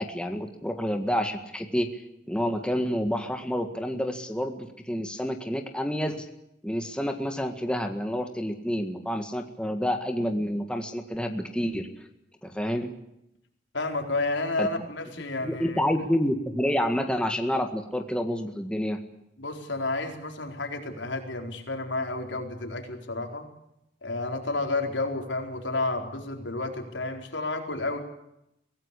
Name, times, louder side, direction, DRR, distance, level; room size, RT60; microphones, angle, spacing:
voice 1, 0.0-2.0 2.3-6.3 6.6-11.9 12.4-12.9 14.6-14.7 15.4-19.0, equal, 5° left, 5 dB, 1.8 m, -28 dB
voice 2, 13.7-15.8 19.4-23.5 24.0-28.0, left 2 dB, 80° left, 3 dB, 4.3 m, -31 dB
24.0 x 17.0 x 8.5 m, 0.85 s
head